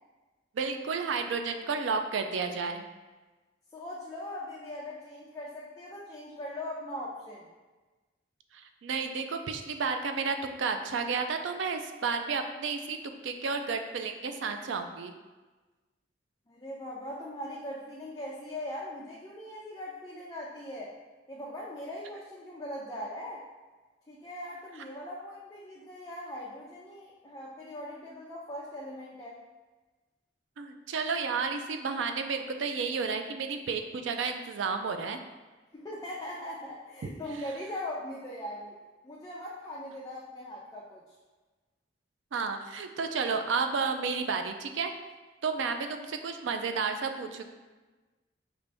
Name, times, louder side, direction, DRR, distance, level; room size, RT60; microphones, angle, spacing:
voice 1, 0.5-2.8 8.5-15.1 30.6-35.2 42.3-44.9 45.4-47.5, right 5 dB, 75° right, 6 dB, 0.4 m, -32 dB
voice 2, 3.7-7.5 16.5-20.9 21.3-23.4 24.1-29.4 35.7-38.8 39.0-41.0 45.7-45.8 46.2-46.3, left 1 dB, 20° left, -4 dB, 0.4 m, -40 dB
5.1 x 2.5 x 3.3 m, 1.3 s
head